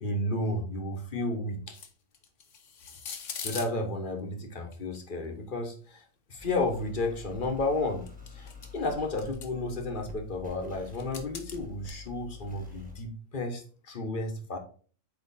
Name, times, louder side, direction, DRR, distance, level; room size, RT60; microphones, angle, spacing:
voice 1, 0.0-1.8 3.4-6.0 6.3-8.0 8.3-14.6, left 2 dB, 35° left, 4 dB, 1.1 m, -32 dB
sound 1, 1.7-3.7 4.7-5.0 7.4-7.8 8.1-8.9 9.2-9.5 10.9-11.9, left 6 dB, 60° left, 1.1 m, -41 dB
sound 2, 6.4-13.0, left 4 dB, 5° right, 1.3 m, -46 dB
8.2 x 3.2 x 4.1 m, 0.42 s
omnidirectional pair, 1.6 m